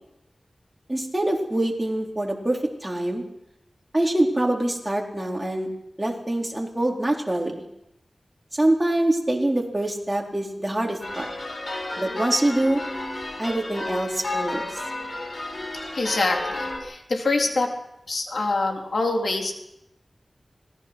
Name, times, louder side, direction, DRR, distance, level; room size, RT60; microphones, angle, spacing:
voice 1, 0.9-3.2 3.9-5.7 6.0-7.6 8.5-11.3 12.0-12.8 13.4-14.8, right 1 dB, 20° right, 0 dB, 4.5 m, -24 dB
sound 1, 11.0-16.8, left 2 dB, 55° left, 7.1 m, -32 dB
voice 2, 15.9-17.7 18.1-19.5, left 3 dB, 80° left, 1 dB, 3.8 m, -25 dB
26.0 x 19.5 x 6.2 m, 0.84 s
wide cardioid pair, 70°, 0 cm